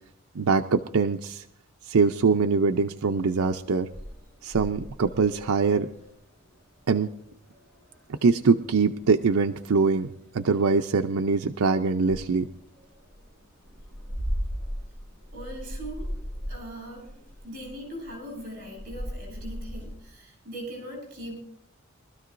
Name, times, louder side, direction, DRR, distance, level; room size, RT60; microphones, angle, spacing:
voice 1, 0.3-1.4 1.9-3.9 4.4-5.9 6.9-7.1 8.1-12.5, right 4 dB, 90° right, 6 dB, 0.5 m, -23 dB
sound 1, 2.9-20.0, equal, 10° left, 7.4 m, -39 dB
voice 2, 15.3-17.1 17.4-21.4, equal, 45° right, 0 dB, 6.4 m, -40 dB
23.5 x 13.0 x 2.6 m, 0.73 s
head